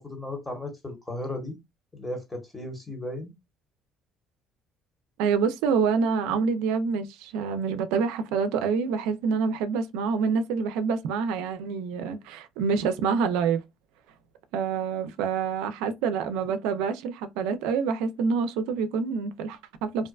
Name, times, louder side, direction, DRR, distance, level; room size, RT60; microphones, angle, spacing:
voice 1, 0.0-1.6 1.9-3.3, left 1 dB, 15° left, 1.1 m, -35 dB
voice 2, 5.2-13.6 14.5-20.1, right 5 dB, 90° right, 0.3 m, -27 dB
2.5 x 2.1 x 2.3 m
supercardioid pair, 90°, 0 cm